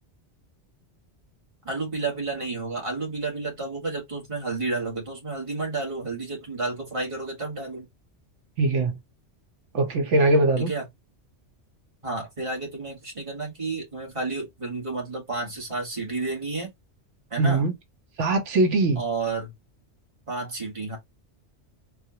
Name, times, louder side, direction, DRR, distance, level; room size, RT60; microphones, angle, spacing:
voice 1, 1.6-7.9 10.6-10.8 12.0-16.7 17.3-17.6 19.0-19.5 20.3-21.0, right 3 dB, 30° right, 1.4 m, -31 dB
voice 2, 8.6-9.0 9.7-10.7 17.4-17.7 18.2-19.0, right 2 dB, 85° right, 1.2 m, -21 dB
4.2 x 2.3 x 2.8 m
omnidirectional pair, 1.2 m